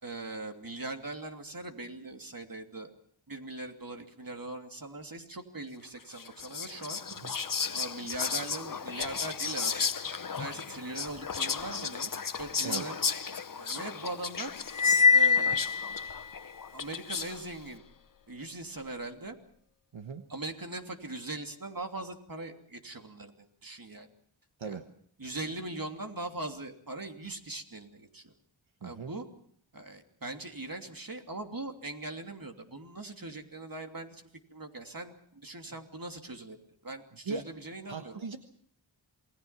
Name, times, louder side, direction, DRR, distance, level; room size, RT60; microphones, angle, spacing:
voice 1, 0.0-2.9 3.3-7.0 7.7-12.1 12.4-13.0 13.5-14.5 15.1-15.6 16.7-17.8 18.3-19.4 20.3-24.1 24.6-24.8 25.2-28.3 28.8-29.2 29.7-34.2 34.5-36.6 36.8-38.2, right 2 dB, 45° right, 4 dB, 3.0 m, -40 dB
Whispering, 6.1-17.5, left 6 dB, 45° left, 0.9 m, -35 dB
Cymbal, 14.7-16.2, left 5 dB, 85° left, 1.2 m, -23 dB
voice 2, 28.8-29.1 37.3-37.5 37.9-38.4, right 4 dB, 70° right, 7 dB, 1.4 m, -38 dB
28.0 x 20.0 x 5.9 m, 0.63 s
wide cardioid pair, 50°, 47 cm